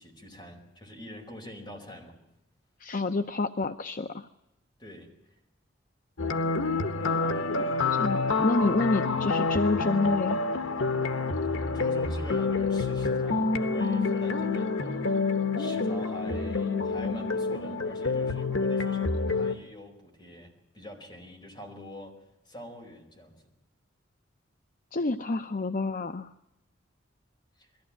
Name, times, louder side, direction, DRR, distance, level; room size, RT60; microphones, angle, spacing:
voice 1, 0.0-2.2 4.8-5.4 7.0-7.9 11.7-15.2 15.6-22.2 22.4-23.4 27.6-27.7, left 1 dB, 25° left, 1 dB, 4.9 m, -45 dB
voice 2, 2.8-4.3 8.0-10.4 24.9-26.3, left 3 dB, 45° left, 9 dB, 0.7 m, -28 dB
sound 1, 6.2-19.5, left 4 dB, 85° left, 1.2 m, -28 dB
22.5 x 15.0 x 8.8 m, 0.90 s
head